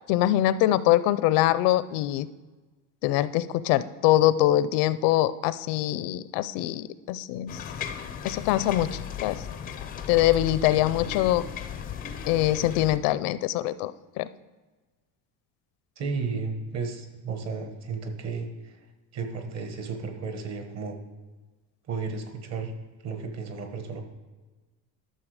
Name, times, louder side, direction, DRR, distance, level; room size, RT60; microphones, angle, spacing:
voice 1, 0.1-2.3 3.0-7.5 8.2-9.4 10.1-11.4 12.3-13.9 14.2-14.3, left 14 dB, 75° left, 15 dB, 0.6 m, -23 dB
sound 1, 7.5-13.0, left 8 dB, 20° left, 0.4 m, -36 dB
voice 2, 16.0-18.8 19.1-21.0 21.9-22.7 23.0-24.0, right 4 dB, 40° right, 6 dB, 1.3 m, -33 dB
12.0 x 6.7 x 4.9 m, 1.3 s
cardioid pair, 180°, 41 cm